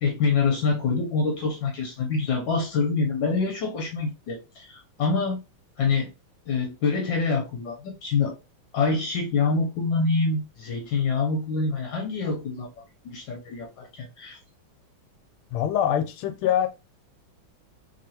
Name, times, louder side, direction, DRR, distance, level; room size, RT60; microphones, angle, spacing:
voice 1, 0.0-5.4 5.8-6.1 6.5-8.3 8.7-12.7 13.0-14.4, left 4 dB, 70° left, 1.3 m, -26 dB
voice 2, 15.5-16.7, left 10 dB, 90° left, 1.5 m, -24 dB
3.2 x 3.0 x 2.7 m
omnidirectional pair, 2.3 m